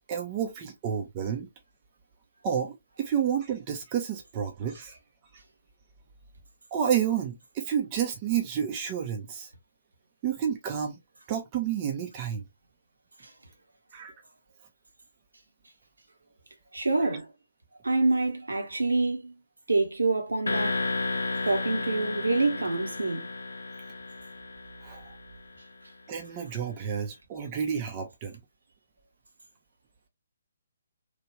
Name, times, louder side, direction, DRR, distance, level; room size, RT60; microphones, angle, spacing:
voice 1, 0.1-1.5 2.4-5.0 6.7-9.5 10.2-11.0 11.3-12.4 13.9-14.1 24.8-25.1 26.1-28.4, right 8 dB, 25° right, 0.5 m, -30 dB
voice 2, 16.7-17.3 17.8-19.3 19.7-20.8 21.4-23.3, right 3 dB, 70° right, 0.9 m, -26 dB
sound 1, 20.5-25.4, left 3 dB, 65° left, 0.5 m, -33 dB
3.1 x 2.3 x 3.0 m
figure-of-eight pair, 135°, 0 cm